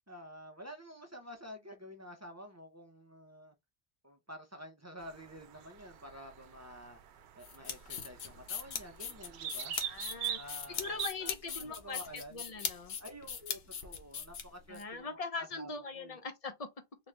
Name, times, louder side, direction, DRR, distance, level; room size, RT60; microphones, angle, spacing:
voice 1, 0.1-3.5 4.0-9.8 10.3-12.4 13.0-16.2, equal, 20° right, 0.5 m, -50 dB
sound 1, 5.0-11.1, right 9 dB, 75° right, 0.8 m, -43 dB
sound 2, 7.4-14.8, left 7 dB, 65° left, 1.0 m, -40 dB
voice 2, 9.8-10.4 10.8-12.0 12.3-13.0 14.7-16.7, left 4 dB, 40° left, 0.7 m, -41 dB
4.0 x 2.3 x 3.1 m
omnidirectional pair, 1.1 m